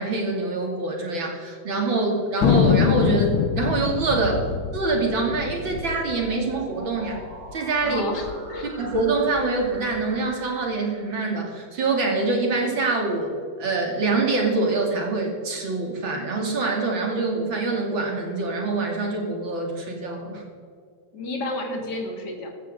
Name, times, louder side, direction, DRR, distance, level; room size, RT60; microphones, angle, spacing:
voice 1, 0.0-4.4 4.7-7.2 7.5-8.0 8.8-13.3 13.6-20.4, right 3 dB, 65° right, 0 dB, 3.5 m, -25 dB
Thunder, 2.4-7.2 7.5-7.6 7.8-8.4 8.8-10.0, left 8 dB, 75° left, 1.6 m, -24 dB
sound 1, 4.5-12.2, right 2 dB, 90° right, 3.4 m, -44 dB
voice 2, 7.8-8.9 21.1-22.5, left 2 dB, 50° left, 2 dB, 2.7 m, -31 dB
16.0 x 13.5 x 3.8 m, 2.1 s
omnidirectional pair, 2.2 m